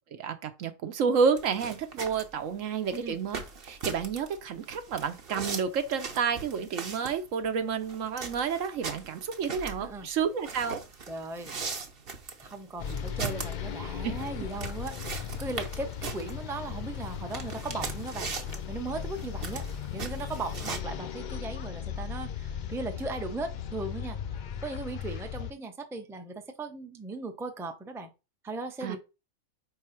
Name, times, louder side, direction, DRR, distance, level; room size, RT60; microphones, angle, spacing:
voice 1, 0.1-3.4 3.6-10.8 14.0-14.1 28.8-29.0, right 6 dB, 75° right, 1.2 m, -30 dB
sound 1, 1.4-20.8, right 4 dB, 50° right, 1.1 m, -40 dB
voice 2, 11.1-11.6 12.4-18.3 18.7-19.6 19.9-24.2 24.6-28.1 28.4-29.0, right 3 dB, 5° right, 0.5 m, -37 dB
sound 2, 12.8-25.5, left 8 dB, 65° left, 0.4 m, -37 dB
4.8 x 3.9 x 5.7 m
omnidirectional pair, 1.3 m